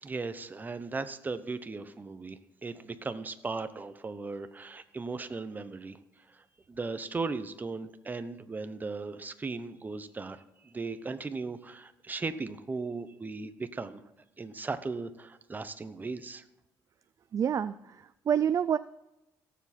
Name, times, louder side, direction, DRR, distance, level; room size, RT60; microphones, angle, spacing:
voice 1, 0.0-6.0 6.3-14.0 14.4-16.4, right 3 dB, 25° right, 11 dB, 0.9 m, -37 dB
voice 2, 17.3-18.8, right 8 dB, 45° right, 14 dB, 0.4 m, -28 dB
17.0 x 7.4 x 4.4 m, 0.91 s
cardioid pair, 100°, 8 cm